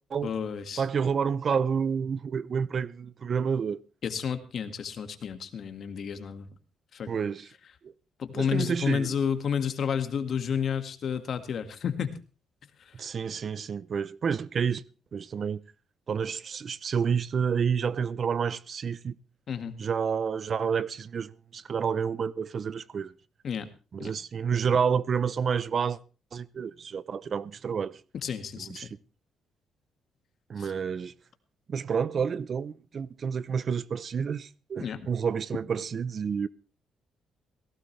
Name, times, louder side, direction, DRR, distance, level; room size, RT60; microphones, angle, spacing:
voice 1, 0.2-0.9 4.0-6.5 6.9-7.1 8.2-12.1 12.8-13.1 19.5-19.8 23.4-23.7 24.0-24.1 28.2-28.9 30.6-30.7 34.8-35.1, left 7 dB, 60° left, 1.9 m, -31 dB
voice 2, 0.8-3.8 7.1-7.5 7.8-7.9 8.3-9.2 12.9-14.8 15.1-15.6 16.1-19.1 19.8-23.1 23.9-26.0 26.3-28.0 28.6-28.9 30.5-31.1 31.7-36.5, right 6 dB, 50° right, 0.6 m, -29 dB
17.5 x 16.5 x 3.3 m
cardioid pair, 90°, 0 cm